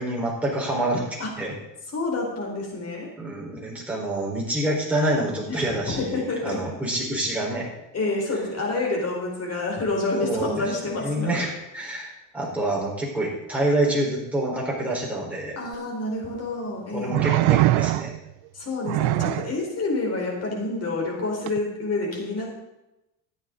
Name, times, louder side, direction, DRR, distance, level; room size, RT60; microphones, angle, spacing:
voice 1, 0.0-1.5 3.2-7.7 10.2-15.6 16.9-18.2, right 1 dB, 5° right, -5 dB, 4.3 m, -27 dB
voice 2, 1.9-3.1 5.5-6.7 7.9-11.3 15.6-17.4 18.5-22.5, left 2 dB, 35° left, -1 dB, 4.3 m, -28 dB
sound 1, 15.7-15.8 17.1-18.3 18.9-19.6 21.5-21.6, right 18 dB, 65° right, 0.5 m, -22 dB
13.5 x 9.8 x 3.9 m, 0.92 s
cardioid pair, 120°, 43 cm